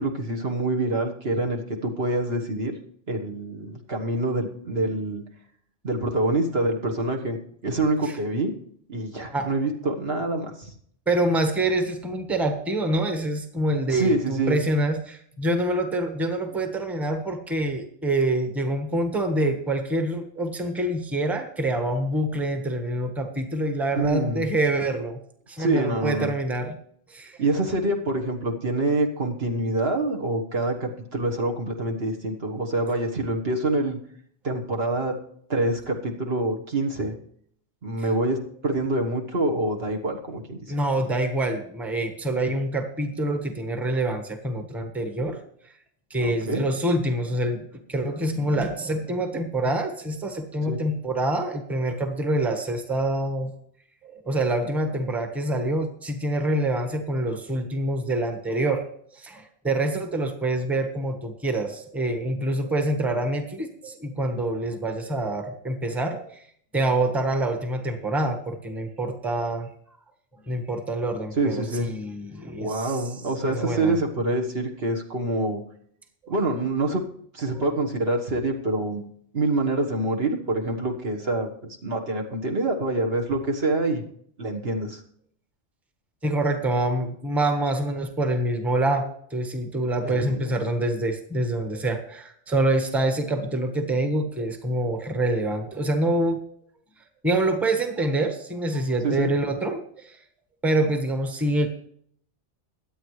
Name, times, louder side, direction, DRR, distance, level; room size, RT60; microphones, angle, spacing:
voice 1, 0.0-2.7 3.1-5.2 5.8-7.4 7.6-8.5 8.9-10.7 13.9-14.6 24.0-24.5 25.6-26.3 27.4-34.0 34.4-35.2 35.5-37.2 37.8-38.4 38.6-40.6 46.2-46.6 50.7-50.8 71.3-71.9 72.6-75.6 76.3-77.0 77.3-79.0 79.3-81.5 81.8-84.0 84.4-85.0 90.0-90.4 99.0-99.3, right 2 dB, 55° right, 2 dB, 1.7 m, -26 dB
voice 2, 11.1-25.2 25.5-26.8 27.1-27.4 40.7-45.4 46.1-47.6 47.9-53.5 54.0-58.8 59.1-66.2 66.7-69.7 70.5-73.0 73.5-74.0 76.2-76.3 86.2-96.4 97.2-100.2 100.6-101.7, right 1 dB, ahead, 5 dB, 1.2 m, -26 dB
23.0 x 8.8 x 3.2 m, 0.63 s
omnidirectional pair, 1.2 m